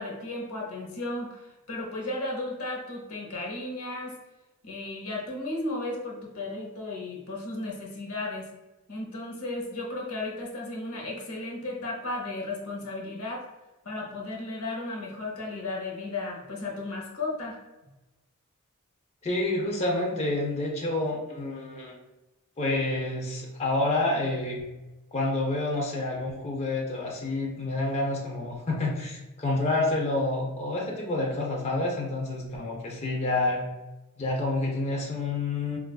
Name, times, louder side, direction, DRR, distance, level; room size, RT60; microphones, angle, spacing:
voice 1, 0.0-4.1 4.6-8.5 8.9-13.4 13.8-17.6, left 2 dB, 85° left, -1 dB, 0.8 m, -34 dB
voice 2, 19.2-21.9 22.6-24.6 25.1-33.6 34.2-35.8, left 2 dB, 30° left, -2 dB, 0.5 m, -28 dB
4.0 x 2.3 x 2.3 m, 1.1 s
head